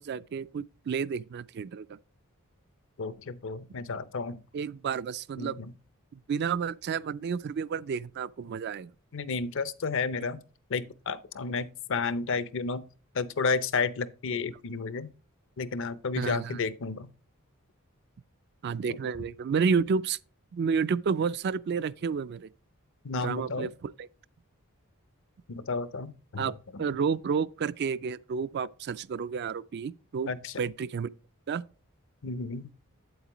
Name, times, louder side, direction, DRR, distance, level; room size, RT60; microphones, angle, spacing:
voice 1, 0.0-2.0 4.5-5.6 6.1-8.9 16.1-16.6 18.6-20.2 20.5-22.5 23.2-24.1 26.4-30.3 30.6-31.1 31.5-31.6, right 6 dB, 50° right, 0.4 m, -30 dB
voice 2, 3.0-4.4 5.4-5.7 9.1-10.4 10.7-12.8 13.1-15.1 15.6-17.1 18.9-19.0 23.0-23.7 25.5-26.5 26.7-26.9 30.3-30.6 32.2-32.7, left 4 dB, 60° left, 0.6 m, -32 dB
8.2 x 8.0 x 3.0 m
head